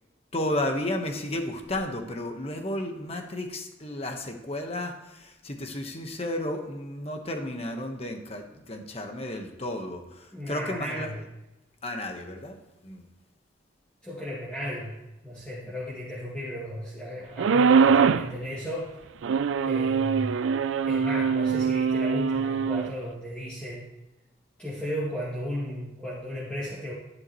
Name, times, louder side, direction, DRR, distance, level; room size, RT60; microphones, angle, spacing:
voice 1, 0.3-11.1 11.8-12.6 12.8-13.0, left 1 dB, 30° left, 5 dB, 1.2 m, -33 dB
voice 2, 10.3-11.2 14.0-15.0 15.2-18.9 19.6-20.4 20.9-23.9 24.6-26.9, equal, 5° left, -10 dB, 2.3 m, -35 dB
sound 1, 17.4-18.3 19.2-22.9, right 6 dB, 85° right, 0.4 m, -23 dB
12.0 x 11.0 x 3.1 m, 0.99 s
head